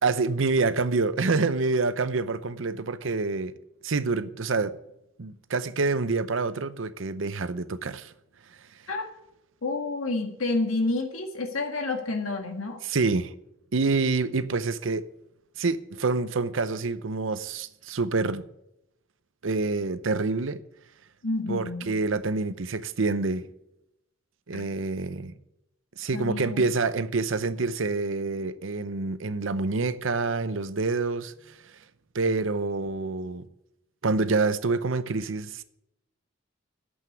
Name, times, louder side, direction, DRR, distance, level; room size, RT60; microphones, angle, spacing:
voice 1, 0.0-3.5 3.8-4.8 5.2-8.1 12.8-13.3 13.7-15.1 15.6-18.4 19.4-20.6 21.5-23.5 24.5-25.4 26.0-31.3 32.1-33.5 34.0-35.6, right 3 dB, 70° right, 0.7 m, -27 dB
voice 2, 9.6-12.8 21.2-22.0 24.5-24.7 26.0-26.6, left 2 dB, 85° left, 1.7 m, -29 dB
9.2 x 8.1 x 8.0 m
head